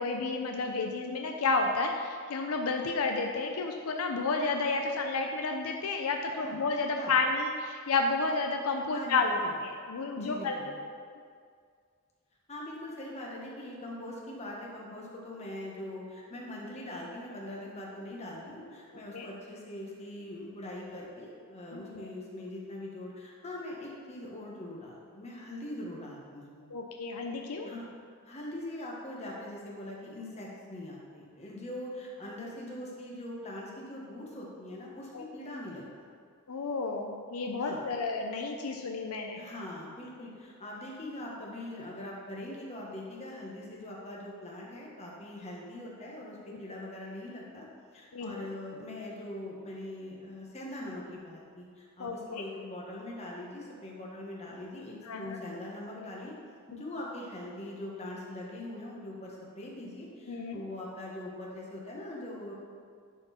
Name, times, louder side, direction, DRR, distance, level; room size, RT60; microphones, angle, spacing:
voice 1, 0.0-9.3 9.6-10.6 19.1-19.3 21.7-22.1 26.7-27.7 35.1-35.2 36.5-39.5 46.5-46.6 48.1-48.3 52.0-52.4 55.1-55.4 60.3-60.6, left 3 dB, 80° left, 3 dB, 0.6 m, -31 dB
voice 2, 6.2-6.6 6.9-7.2 8.9-9.6 10.2-10.8 12.5-26.6 27.6-27.9 28.2-36.1 37.6-37.8 39.3-47.7 47.9-56.3 56.7-62.5, left 1 dB, 30° left, -4 dB, 1.4 m, -42 dB
10.5 x 4.5 x 4.3 m, 2.1 s
head